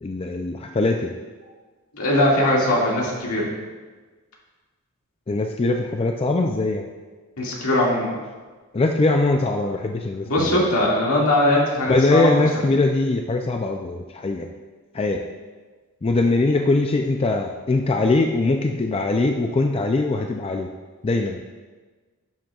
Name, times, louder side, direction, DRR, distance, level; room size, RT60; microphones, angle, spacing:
voice 1, 0.0-1.1 5.3-6.9 8.7-10.6 11.9-14.5 14.9-15.2 16.0-20.7 21.0-21.4, left 2 dB, 25° left, 3 dB, 0.4 m, -21 dB
voice 2, 1.9-3.5 7.4-8.2 10.2-12.3, left 1 dB, 75° left, -4 dB, 2.1 m, -20 dB
11.0 x 7.5 x 2.4 m, 1.3 s
head